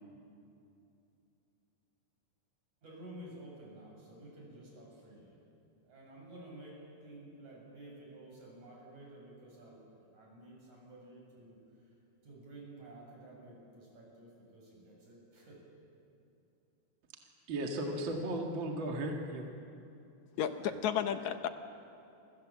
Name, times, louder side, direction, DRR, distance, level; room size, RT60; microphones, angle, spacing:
voice 1, 2.8-5.4 5.8-11.6 12.2-15.7, right 1 dB, 70° right, -2 dB, 8.8 m, -52 dB
voice 2, 17.5-19.5 20.6-20.9, right 1 dB, 45° right, 1 dB, 2.5 m, -36 dB
voice 3, 20.4-21.5, left 9 dB, 75° left, 9 dB, 2.2 m, -32 dB
29.0 x 24.5 x 7.6 m, 2.7 s
omnidirectional pair, 3.5 m